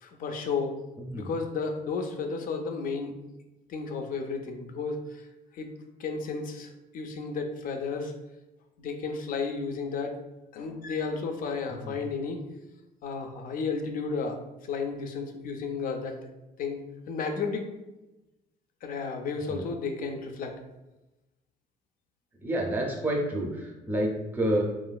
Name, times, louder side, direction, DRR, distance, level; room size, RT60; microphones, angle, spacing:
voice 1, 0.0-0.7 1.1-3.1 3.7-5.2 5.5-5.7 6.0-8.1 8.8-10.2 10.5-12.4 13.0-14.4 14.7-16.1 16.6-16.8 17.1-17.7 18.8-20.6, left 4 dB, 55° left, 5 dB, 0.4 m, -32 dB
voice 2, 1.0-1.3 11.7-12.0 19.5-19.6 22.4-24.6, right 1 dB, 10° right, -1 dB, 0.6 m, -29 dB
3.0 x 2.4 x 2.3 m, 1.0 s
cardioid pair, 110°, 17 cm